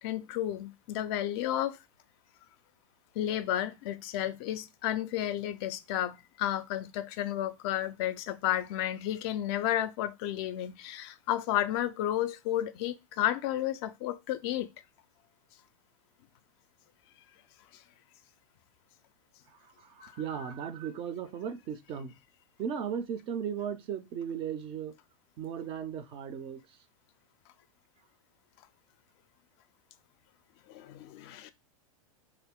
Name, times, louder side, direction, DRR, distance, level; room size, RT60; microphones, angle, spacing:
voice 1, 0.0-1.8 3.2-14.7 17.7-17.8 20.0-20.1 30.7-31.5, left 12 dB, 45° left, 0.4 m, -32 dB
voice 2, 19.5-22.1 22.6-25.0 25.4-26.8, right 8 dB, 30° right, 0.4 m, -37 dB
2.6 x 2.5 x 3.5 m
hypercardioid pair, 120°, 18 cm